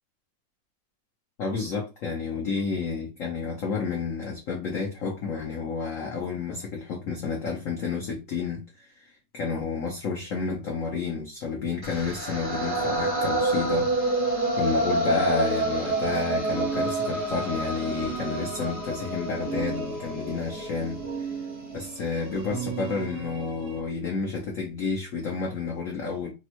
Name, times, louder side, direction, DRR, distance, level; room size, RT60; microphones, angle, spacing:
voice 1, 1.4-14.2 14.6-21.4 21.7-26.3, left 5 dB, 80° left, 0.7 m, -31 dB
sound 1, 11.8-21.9, right 2 dB, 25° right, 0.5 m, -28 dB
sound 2, 15.8-23.8, right 6 dB, 90° right, 0.5 m, -37 dB
3.5 x 2.1 x 2.8 m
omnidirectional pair, 2.2 m